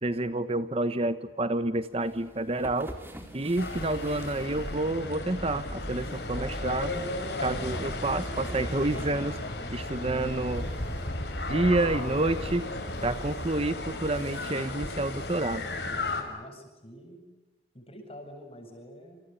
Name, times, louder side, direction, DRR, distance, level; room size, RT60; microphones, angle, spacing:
voice 1, 0.0-2.9 3.3-7.1 7.4-9.4 9.7-10.7 11.5-12.7 13.0-15.7, right 2 dB, 30° right, 12 dB, 1.0 m, -29 dB
sound 1, 1.9-15.8, equal, 10° right, 4.2 m, -44 dB
sound 2, 3.6-16.2, left 2 dB, 65° left, 5.4 m, -35 dB
voice 2, 16.2-17.3 17.7-19.2, equal, 30° left, 4 dB, 7.7 m, -47 dB
29.0 x 28.5 x 7.1 m, 1.2 s
head